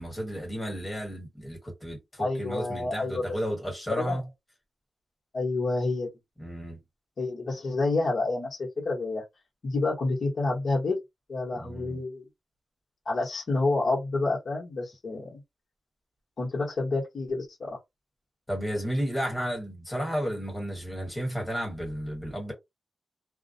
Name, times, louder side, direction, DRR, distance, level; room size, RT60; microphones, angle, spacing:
voice 1, 0.0-4.2 6.4-6.8 11.6-12.0 18.5-22.5, equal, 15° left, 1.4 m, -33 dB
voice 2, 2.2-3.2 3.9-4.2 5.3-6.1 7.2-9.2 9.6-11.0 11.3-12.2 13.0-15.4 16.4-17.8, left 3 dB, 60° left, 1.0 m, -28 dB
2.3 x 2.1 x 2.6 m
wide cardioid pair, 145°, 0 cm